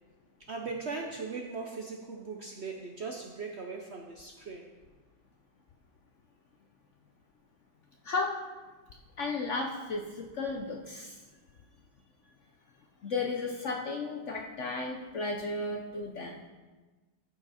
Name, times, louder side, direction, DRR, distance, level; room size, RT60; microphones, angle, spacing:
voice 1, 0.5-4.7, right 4 dB, 80° right, 1 dB, 0.5 m, -39 dB
voice 2, 8.0-8.4 9.2-11.2 13.0-16.4, left 3 dB, 65° left, 2 dB, 0.7 m, -34 dB
14.0 x 5.7 x 4.2 m, 1.3 s
omnidirectional pair, 2.1 m